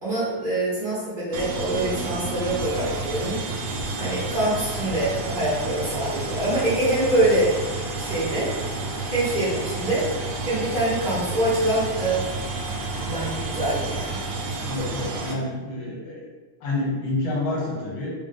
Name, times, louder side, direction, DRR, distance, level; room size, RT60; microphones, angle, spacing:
voice 1, 0.0-3.4 4.0-7.5 8.0-8.5 9.1-10.1 10.5-12.2 13.0-14.2, right 1 dB, 35° right, -9 dB, 0.8 m, -25 dB
sound 1, 1.3-15.3, right 3 dB, 75° right, 1.0 m, -30 dB
voice 2, 14.6-16.3 16.6-18.1, left 2 dB, 75° left, -3 dB, 1.4 m, -28 dB
3.4 x 2.4 x 3.6 m, 1.4 s
omnidirectional pair, 2.4 m